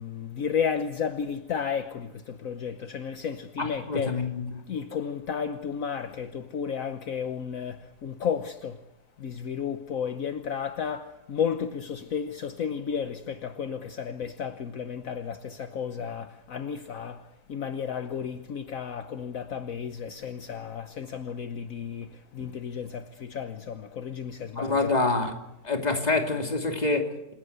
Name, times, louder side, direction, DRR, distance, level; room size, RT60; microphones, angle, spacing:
voice 1, 0.0-4.3 4.7-8.8 9.2-24.9, left 7 dB, 65° left, 1.4 m, -33 dB
voice 2, 3.6-4.3 24.6-25.3 25.6-27.3, left 3 dB, 25° left, 2.9 m, -26 dB
28.0 x 17.0 x 8.1 m
omnidirectional pair, 1.6 m